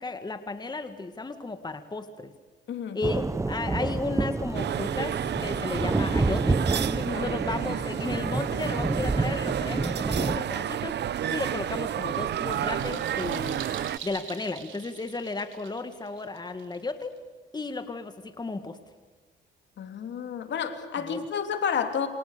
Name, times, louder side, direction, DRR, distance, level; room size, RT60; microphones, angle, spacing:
voice 1, 0.0-2.3 2.9-6.6 6.9-11.0 11.3-13.7 14.0-17.2 17.5-18.8 21.0-21.2, left 3 dB, 20° left, 9 dB, 1.9 m, -34 dB
voice 2, 2.7-3.0 7.1-7.3 19.8-22.1, left 7 dB, 65° left, 7 dB, 3.2 m, -30 dB
sound 1, 3.0-10.4, right 3 dB, 15° right, 0.8 m, -29 dB
sound 2, 4.5-14.0, right 10 dB, 60° right, 0.9 m, -31 dB
sound 3, 11.7-17.2, right 9 dB, 80° right, 4.5 m, -45 dB
28.0 x 28.0 x 6.8 m, 1.4 s
cardioid pair, 90°, 20 cm